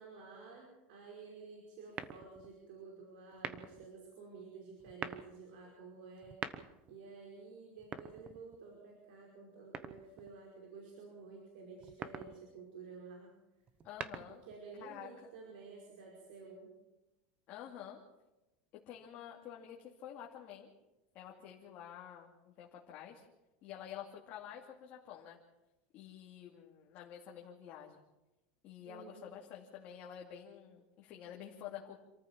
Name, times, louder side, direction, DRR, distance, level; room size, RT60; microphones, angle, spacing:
voice 1, 0.0-6.6 6.9-13.3 14.4-16.7 28.9-29.3, right 4 dB, 65° right, 0 dB, 5.3 m, -52 dB
sound 1, 1.9-2.5 3.3-3.9 4.8-5.3 6.2-7.0 7.8-8.7 9.7-10.4 11.8-12.4 13.7-14.6, right 7 dB, 25° right, 1.0 m, -44 dB
voice 2, 13.8-14.4 14.8-15.3 17.5-18.0 18.9-20.7 21.1-22.3 22.6-23.2 23.6-25.4 25.9-28.0 28.6-32.0, left 9 dB, 35° left, -2 dB, 2.5 m, -49 dB
27.0 x 14.0 x 7.4 m, 1.0 s
supercardioid pair, 175°, 5 cm